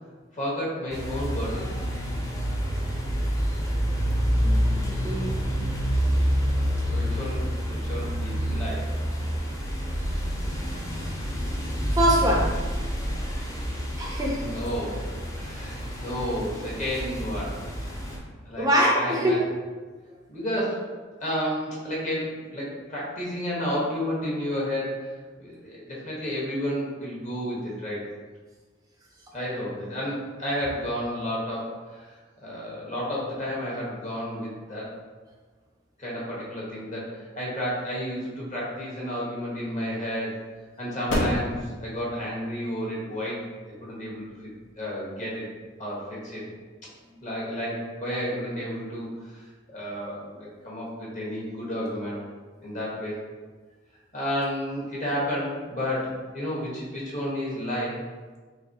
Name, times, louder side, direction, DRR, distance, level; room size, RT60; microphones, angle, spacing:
voice 1, 0.3-1.7 6.9-7.5 7.8-8.9 14.4-15.0 15.3-17.6 18.4-18.7 18.9-19.4 20.3-20.9 21.2-25.1 25.4-28.0 29.3-34.9 36.0-40.3 40.8-43.4 43.8-44.3 44.7-45.5 45.8-46.4 47.2-52.2 52.6-53.2 54.1-58.0, equal, 40° left, -5 dB, 1.2 m, -31 dB
sound 1, 0.9-18.2, equal, 20° left, 0.6 m, -28 dB
voice 2, 4.3-4.8 5.0-5.4 11.9-12.5 14.0-14.4 18.6-19.4, equal, 20° right, -2 dB, 0.4 m, -23 dB
sound 2, 38.6-45.8, equal, 80° left, 0.8 m, -35 dB
3.9 x 3.0 x 2.8 m, 1.4 s
head